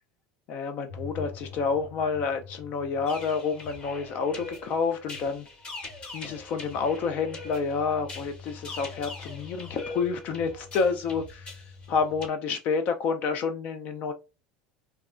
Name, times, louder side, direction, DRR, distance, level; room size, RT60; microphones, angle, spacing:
voice 1, 0.5-5.5 6.1-14.1, left 5 dB, 55° left, 0.4 m, -29 dB
sound 1, 0.9-12.3, left 5 dB, 85° left, 1.5 m, -47 dB
sound 2, 3.1-12.3, left 2 dB, 35° left, 1.2 m, -42 dB
3.4 x 2.2 x 2.4 m
hypercardioid pair, 90°, 3 cm